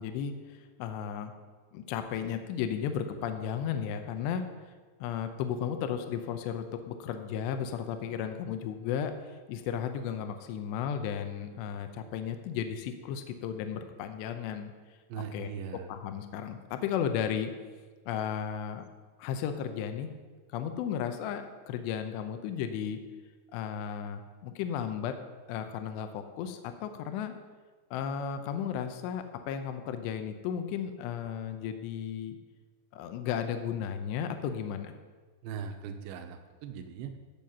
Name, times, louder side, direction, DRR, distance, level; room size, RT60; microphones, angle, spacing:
voice 1, 0.0-1.3 1.7-4.4 5.0-14.7 15.3-15.5 15.9-17.5 18.1-18.8 19.2-20.1 20.5-23.0 23.5-25.1 25.5-27.3 27.9-32.4 32.9-34.9, left 8 dB, 80° left, 7 dB, 2.7 m, -34 dB
voice 2, 15.1-15.9 35.4-37.1, right 6 dB, 75° right, 6 dB, 2.8 m, -39 dB
14.0 x 7.4 x 5.5 m, 1.4 s
omnidirectional pair, 5.6 m